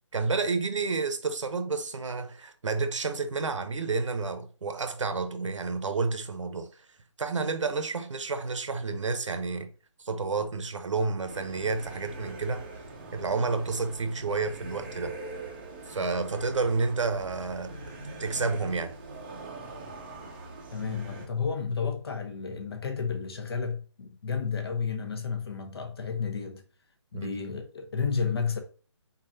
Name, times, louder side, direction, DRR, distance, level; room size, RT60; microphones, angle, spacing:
voice 1, 0.1-6.9 7.2-9.7 10.0-12.6 13.1-15.2 15.9-17.9 18.2-19.0 27.1-27.3, right 4 dB, 85° right, 0.9 m, -30 dB
sound 1, 11.3-21.3, right 2 dB, 20° right, 0.6 m, -43 dB
voice 2, 20.7-26.6 27.1-28.6, left 5 dB, 55° left, 1.1 m, -31 dB
4.2 x 3.9 x 2.7 m
hypercardioid pair, 165°, 15 cm